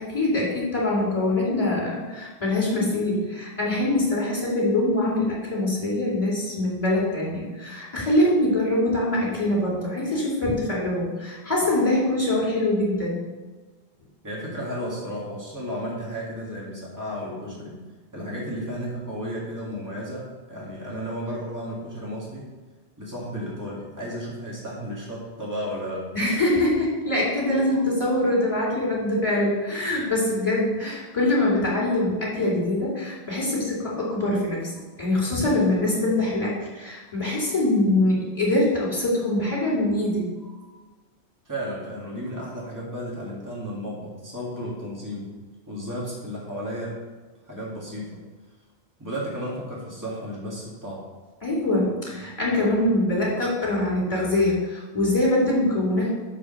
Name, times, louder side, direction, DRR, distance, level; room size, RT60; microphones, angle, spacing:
voice 1, 0.0-13.2 26.1-34.7 35.0-40.6 51.4-56.1, left 1 dB, 30° left, -5 dB, 2.6 m, -23 dB
voice 2, 14.2-17.8 18.1-22.5 23.0-26.1 41.5-45.3 45.7-47.0 47.5-48.2 49.0-51.0, equal, 15° right, -6 dB, 1.9 m, -33 dB
5.8 x 4.9 x 6.3 m, 1.3 s
omnidirectional pair, 1.1 m